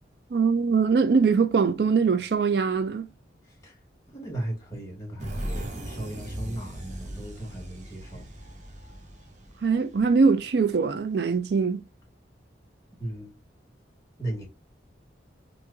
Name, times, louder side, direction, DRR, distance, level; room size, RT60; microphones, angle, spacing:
voice 1, 0.3-3.1 9.6-11.8, right 5 dB, 60° right, 0.4 m, -22 dB
voice 2, 4.1-8.3 13.0-13.3 14.2-14.5, right 1 dB, 20° left, 1.3 m, -36 dB
sound 1, 5.2-10.7, right 1 dB, 40° right, 0.9 m, -38 dB
3.1 x 2.5 x 3.4 m
head